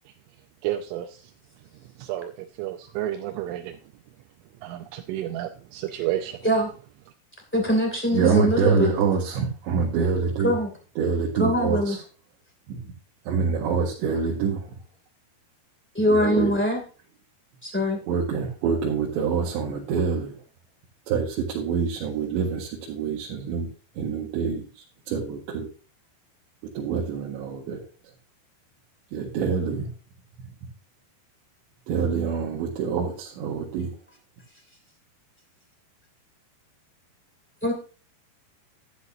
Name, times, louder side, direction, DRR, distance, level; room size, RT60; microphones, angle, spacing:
voice 1, 0.6-1.2 2.0-3.8 4.6-6.4, right 12 dB, 90° right, 4 dB, 3.2 m, -31 dB
voice 2, 7.5-8.9 10.4-10.7 11.4-12.0 15.9-16.8 17.6-18.0 37.6-37.7, equal, 5° left, 1 dB, 1.0 m, -22 dB
voice 3, 8.1-10.6 11.0-12.0 12.7-12.8 13.3-14.7 16.1-16.6 18.1-20.4 21.1-23.7 24.0-25.7 26.8-27.8 29.1-29.9 31.9-33.9, right 6 dB, 70° right, -3 dB, 3.8 m, -26 dB
12.0 x 10.5 x 2.7 m, 0.37 s
omnidirectional pair, 5.4 m